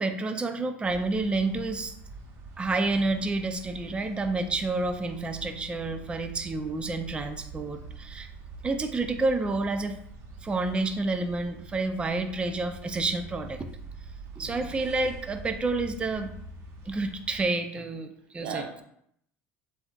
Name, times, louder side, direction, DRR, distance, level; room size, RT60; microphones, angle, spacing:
voice 1, 0.0-1.9 2.6-8.3 8.6-10.0 10.4-13.7 14.4-16.3 16.9-18.6, right 3 dB, 15° right, 7 dB, 0.4 m, -29 dB
sound 1, 0.8-17.5, right 3 dB, 60° right, 1.0 m, -45 dB
voice 2, 14.4-14.8 18.4-18.8, right 5 dB, 85° right, 3 dB, 0.8 m, -38 dB
7.7 x 2.6 x 2.4 m, 0.70 s
supercardioid pair, 110°, 6 cm